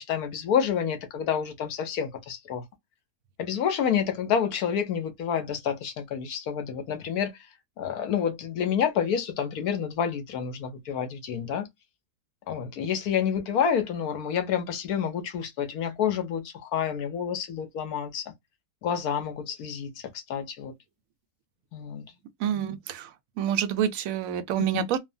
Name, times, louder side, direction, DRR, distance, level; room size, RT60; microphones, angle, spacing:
voice 1, 0.0-2.6 3.4-7.3 7.8-11.7 12.5-18.2 18.8-20.7 21.7-22.1 24.6-24.9, left 8 dB, 75° left, 1.2 m, -28 dB
voice 2, 22.4-23.1 23.4-25.0, right 10 dB, 70° right, 0.9 m, -27 dB
3.2 x 2.1 x 2.5 m
omnidirectional pair, 1.6 m